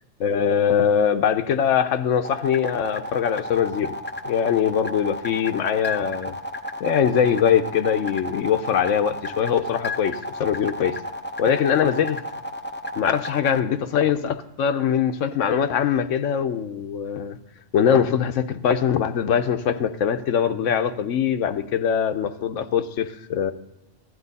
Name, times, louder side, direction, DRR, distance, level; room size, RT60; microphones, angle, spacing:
voice 1, 0.2-3.9 4.2-6.4 6.8-10.9 11.4-12.2 13.0-17.4 17.7-23.5, left 8 dB, 90° left, 1.0 m, -22 dB
sound 1, 2.2-13.6, left 1 dB, 15° left, 0.3 m, -32 dB
15.5 x 10.5 x 4.1 m
omnidirectional pair, 1.3 m